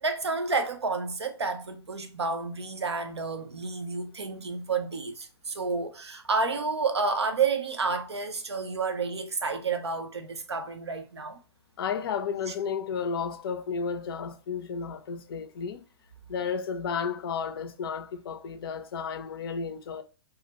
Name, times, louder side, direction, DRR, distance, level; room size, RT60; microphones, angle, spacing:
voice 1, 0.0-11.4, right 4 dB, 85° right, 0.5 m, -30 dB
voice 2, 11.8-15.8 16.3-20.0, left 6 dB, 60° left, 0.4 m, -32 dB
2.3 x 2.1 x 2.7 m
figure-of-eight pair, 110°, 14 cm